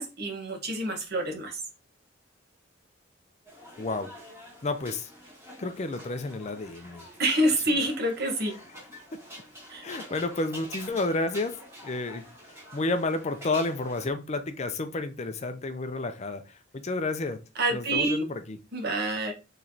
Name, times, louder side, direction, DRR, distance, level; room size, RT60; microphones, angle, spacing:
voice 1, 0.0-1.6 7.2-8.5 9.7-9.9 17.5-18.3 18.7-19.3, right 1 dB, 55° right, 3 dB, 1.2 m, -27 dB
sound 1, 3.4-14.1, equal, 15° right, 2.2 m, -47 dB
voice 2, 3.8-4.1 4.6-5.1 5.6-7.0 9.8-11.6 11.8-12.3 12.7-17.4 17.7-18.6, left 2 dB, 35° left, 8 dB, 0.5 m, -31 dB
4.7 x 3.2 x 2.7 m, 0.29 s
head